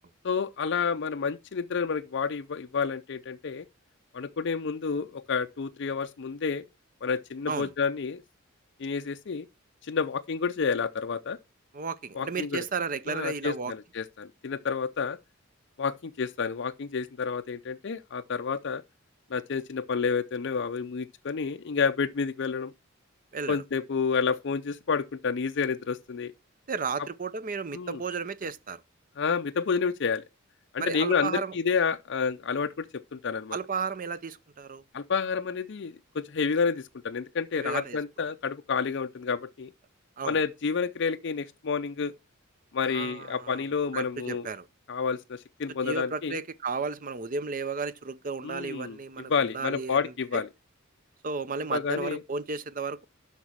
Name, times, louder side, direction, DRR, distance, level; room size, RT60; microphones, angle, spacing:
voice 1, 0.2-3.6 4.1-6.6 7.0-8.2 8.8-9.5 9.8-11.4 12.2-12.6 13.1-15.2 15.8-18.8 19.3-22.7 23.5-26.3 27.7-28.0 29.2-30.2 30.7-33.6 34.9-39.7 40.3-42.1 42.7-44.5 44.9-46.4 48.4-49.0 49.3-50.5 51.7-52.2, left 5 dB, 55° left, 0.5 m, -29 dB
voice 2, 11.7-13.7 23.3-23.6 26.7-28.8 30.8-31.5 33.5-34.8 37.6-38.0 40.2-40.4 42.9-43.6 43.9-44.7 45.8-50.4 51.2-53.0, right 4 dB, 40° right, 0.6 m, -33 dB
8.2 x 5.9 x 6.2 m
head